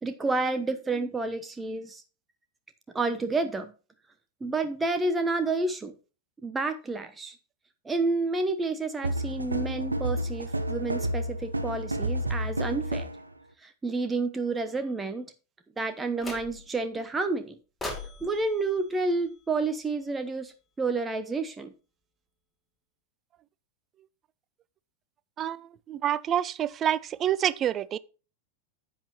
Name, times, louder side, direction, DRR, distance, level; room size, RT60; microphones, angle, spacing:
voice 1, 0.0-2.0 2.9-3.7 4.4-5.9 6.4-7.3 7.8-13.1 13.6-15.3 15.8-17.6 18.2-21.7, right 3 dB, 15° right, 0.9 m, -30 dB
sound 1, 9.0-13.2, right 1 dB, 80° right, 0.8 m, -30 dB
sound 2, 16.2-16.9 17.8-20.0, left 2 dB, 10° left, 2.4 m, -41 dB
voice 2, 25.4-28.0, right 10 dB, 30° right, 0.5 m, -28 dB
10.0 x 8.4 x 3.0 m
figure-of-eight pair, 90°, 0 cm